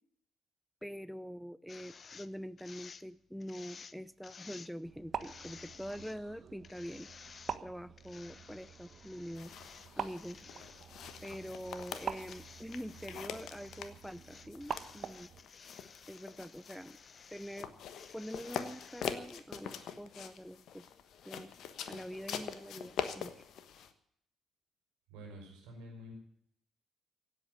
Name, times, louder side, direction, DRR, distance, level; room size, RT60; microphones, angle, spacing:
voice 1, 0.8-7.1 7.6-9.5 10.0-10.4 11.2-15.3 16.1-17.0 17.3-17.7 18.1-20.9 21.3-21.5 21.9-23.3, equal, ahead, 18 dB, 0.7 m, -45 dB
sound 1, 1.7-2.3 2.6-3.1 3.4-4.0 4.2-4.7 5.2-6.2 6.6-7.6 8.0-9.9 10.2-17.7 18.0-19.0, left 5 dB, 45° left, 0.7 m, -55 dB
sound 2, 4.8-15.4, right 7 dB, 50° right, 1.3 m, -46 dB
sound 3, 9.3-23.9, left 8 dB, 60° left, 1.2 m, -44 dB
voice 2, 25.1-26.1, equal, 75° right, 1 dB, 5.5 m, -49 dB
17.0 x 8.3 x 9.4 m, 0.70 s
hypercardioid pair, 45°, 0 cm